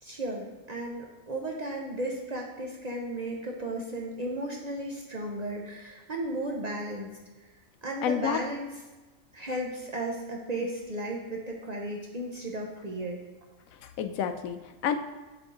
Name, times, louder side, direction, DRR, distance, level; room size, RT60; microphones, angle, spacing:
voice 1, 0.0-7.2 7.8-8.7 9.3-13.2, right 1 dB, 40° right, 0 dB, 0.7 m, -34 dB
voice 2, 8.0-8.4 13.8-15.0, left 8 dB, 85° left, 8 dB, 1.0 m, -29 dB
7.3 x 3.5 x 3.9 m, 1.2 s
omnidirectional pair, 1.4 m